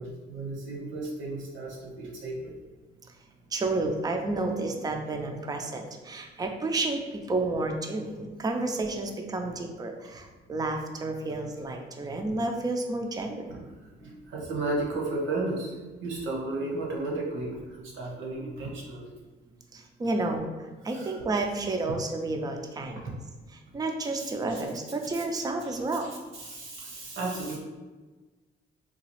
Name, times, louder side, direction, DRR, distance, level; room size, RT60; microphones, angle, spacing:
voice 1, 0.0-2.6 12.3-12.4 13.5-19.1 20.8-21.1 23.0-23.1 24.2-24.7 25.0-25.8 26.0-27.6, right 2 dB, 75° right, -1 dB, 1.0 m, -34 dB
voice 2, 3.5-13.5 19.7-20.5 20.8-23.1 23.7-26.1, right 2 dB, 20° right, 3 dB, 0.4 m, -31 dB
3.9 x 2.3 x 3.0 m, 1.3 s
cardioid pair, 90°, 20 cm